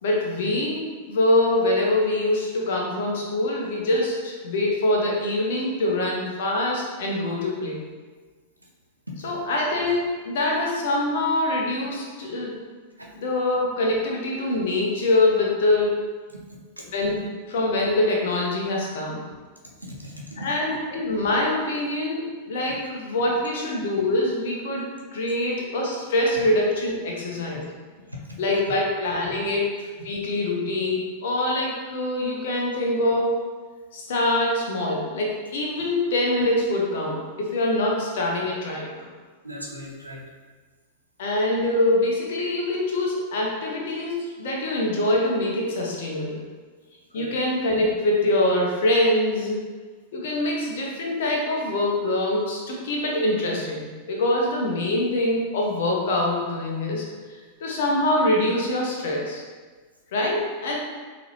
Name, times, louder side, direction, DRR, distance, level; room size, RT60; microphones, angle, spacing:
voice 1, 0.0-7.8 9.2-12.6 13.2-15.9 16.9-19.2 20.4-27.7 28.4-33.4 33.9-39.1 41.2-46.4 47.1-49.6 50.1-57.0 57.6-59.4 60.1-60.8, left 1 dB, 55° left, -2 dB, 0.8 m, -24 dB
voice 2, 19.8-20.5 28.1-28.2 39.4-40.2 47.1-47.3, equal, 85° right, -2 dB, 0.6 m, -38 dB
3.9 x 2.9 x 2.9 m, 1.4 s
figure-of-eight pair, 90°, 0 cm